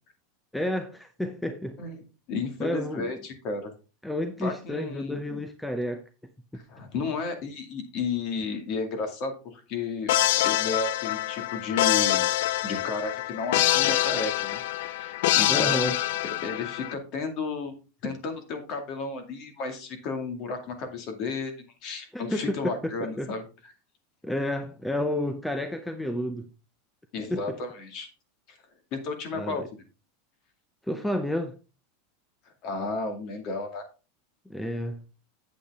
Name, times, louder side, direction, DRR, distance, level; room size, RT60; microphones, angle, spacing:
voice 1, 0.5-1.8 2.6-3.1 4.0-6.0 15.5-16.0 22.1-23.3 24.2-26.5 27.3-27.6 29.3-29.7 30.9-31.6 34.5-35.0, left 1 dB, 5° left, 0.6 m, -30 dB
voice 2, 2.3-3.7 4.4-5.4 6.5-10.1 10.4-12.2 12.6-15.9 16.4-17.7 18.0-23.7 27.1-28.1 28.9-29.6 32.6-33.8, left 4 dB, 40° left, 2.2 m, -33 dB
sound 1, 10.1-16.9, left 15 dB, 70° left, 0.4 m, -25 dB
8.5 x 7.5 x 3.6 m
supercardioid pair, 155°, 0 cm